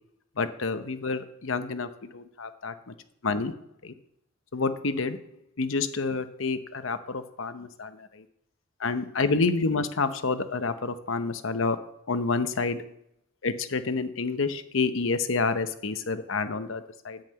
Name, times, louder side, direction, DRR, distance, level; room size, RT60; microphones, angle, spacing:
voice 1, 0.4-2.9 3.2-3.5 3.8-3.9 4.5-5.2 5.6-8.2 8.8-11.8 12.1-12.8 13.4-17.2, left 4 dB, 80° left, 10 dB, 0.8 m, -28 dB
10.5 x 5.7 x 7.9 m, 0.77 s
head